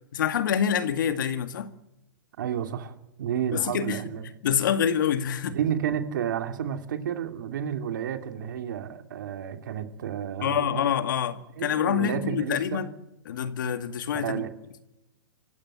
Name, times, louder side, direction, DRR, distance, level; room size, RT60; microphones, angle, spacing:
voice 1, 0.1-1.7 3.5-4.0 4.4-5.6 10.4-12.9 13.3-14.4, left 8 dB, 60° left, 2.1 m, -26 dB
voice 2, 2.4-2.9 3.2-4.2 5.5-10.9 11.6-12.8 14.2-14.5, right 9 dB, 60° right, 2.8 m, -31 dB
27.5 x 16.0 x 10.0 m
hypercardioid pair, 170°, 12 cm